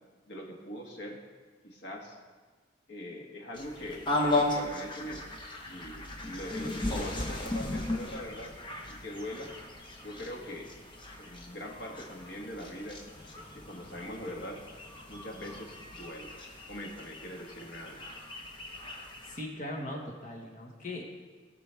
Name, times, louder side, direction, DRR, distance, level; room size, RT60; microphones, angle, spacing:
voice 1, 0.3-1.2 1.6-2.2 2.9-5.3 5.7-8.6 8.9-9.5 10.0-10.7 11.2-14.6 15.1-16.3 16.7-18.1, equal, 70° left, 0 dB, 1.6 m, -42 dB
sound 1, 3.5-19.4, left 2 dB, 25° left, 1.1 m, -36 dB
voice 2, 19.2-21.0, left 1 dB, 40° left, 0 dB, 1.4 m, -39 dB
18.0 x 6.0 x 3.5 m, 1.4 s
head